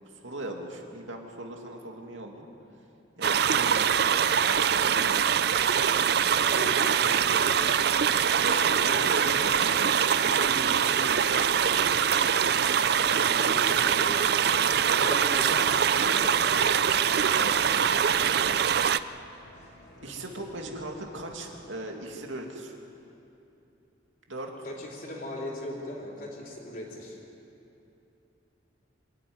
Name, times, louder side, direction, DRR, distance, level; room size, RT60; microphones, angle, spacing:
voice 1, 0.2-2.5 3.2-4.1 4.7-5.5 8.4-12.9 17.4-18.1 20.0-22.7 24.3-24.7, right 1 dB, 85° right, 2 dB, 2.5 m, -39 dB
sound 1, 3.2-19.0, right 8 dB, 55° right, 0.4 m, -23 dB
voice 2, 6.3-8.0 8.9-9.1 13.0-17.1 24.6-27.2, left 1 dB, 45° left, -2 dB, 4.2 m, -39 dB
sound 2, 11.1-21.6, left 1 dB, 70° left, 4.9 m, -50 dB
25.0 x 13.0 x 9.6 m, 2.8 s
head